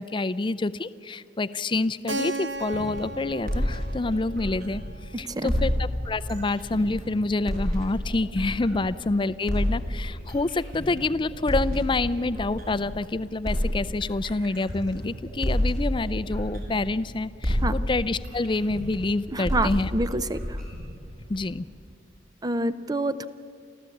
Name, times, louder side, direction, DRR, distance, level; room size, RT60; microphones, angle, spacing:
voice 1, 0.0-4.8 5.2-19.9 21.3-21.6, left 2 dB, 25° left, 14 dB, 0.5 m, -27 dB
Keyboard (musical), 2.1-6.6, right 2 dB, 80° right, 1.1 m, -37 dB
sound 1, 2.6-5.0 5.5-9.0 9.5-13.0 13.4-17.1 17.4-21.5, equal, 50° right, 6.5 m, -29 dB
voice 2, 19.3-20.6 22.4-23.3, right 1 dB, 20° right, 13 dB, 0.6 m, -27 dB
30.0 x 14.0 x 8.4 m, 2.4 s
head